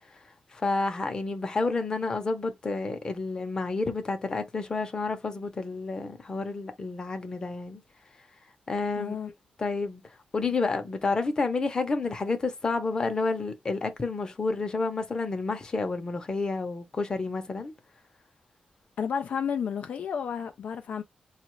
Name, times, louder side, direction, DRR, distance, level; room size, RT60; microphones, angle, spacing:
voice 1, 0.5-7.8 8.7-9.2 9.6-10.0 10.3-17.7, left 3 dB, 30° left, 0.8 m, -30 dB
voice 2, 9.0-9.3 19.0-21.0, left 7 dB, 65° left, 0.4 m, -31 dB
4.9 x 2.4 x 3.1 m
wide cardioid pair, 165°, 3 cm